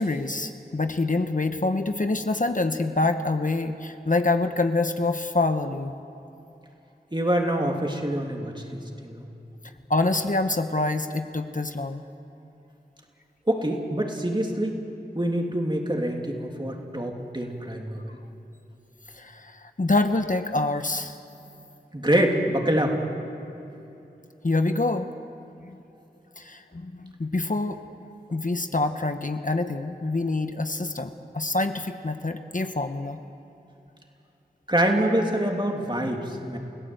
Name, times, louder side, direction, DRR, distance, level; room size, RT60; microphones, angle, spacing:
voice 1, 0.0-5.9 9.9-12.0 19.1-21.2 24.4-25.1 25.6-25.8 26.4-27.8 28.3-33.2, left 2 dB, 50° left, 7 dB, 1.0 m, -26 dB
voice 2, 7.1-9.3 13.5-14.8 15.1-18.2 21.9-23.0 34.7-36.6, right 1 dB, 25° right, 1 dB, 3.1 m, -25 dB
29.0 x 17.0 x 7.9 m, 2.9 s
wide cardioid pair, 50°, 17 cm